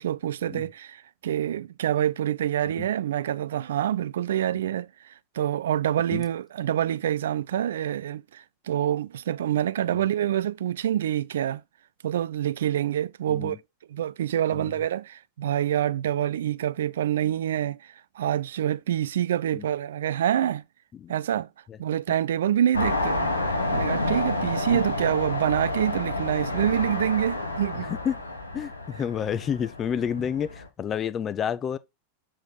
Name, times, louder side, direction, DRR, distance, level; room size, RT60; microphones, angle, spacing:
voice 1, 0.0-11.6 12.0-13.6 13.9-20.6 21.1-21.5 21.8-23.3 23.7-27.9, right 11 dB, 60° right, 0.3 m, -26 dB
sound 1, 22.7-30.7, left 2 dB, 80° left, 1.0 m, -29 dB
voice 2, 28.5-31.8, left 8 dB, 25° left, 0.5 m, -29 dB
6.2 x 3.9 x 4.0 m
figure-of-eight pair, 90°, 0 cm